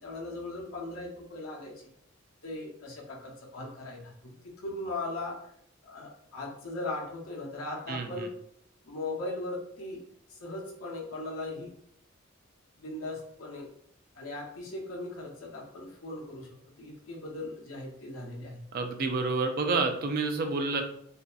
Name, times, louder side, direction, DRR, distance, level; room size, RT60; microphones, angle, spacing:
voice 1, 0.0-1.7 2.4-5.4 5.8-8.3 8.9-10.0 10.3-11.7 12.8-13.7 14.2-16.5 16.8-18.6, left 2 dB, 85° left, -2 dB, 0.7 m, -38 dB
voice 2, 7.9-8.3 18.7-20.8, right 3 dB, 45° right, 5 dB, 0.3 m, -29 dB
2.6 x 2.1 x 2.4 m, 0.70 s
head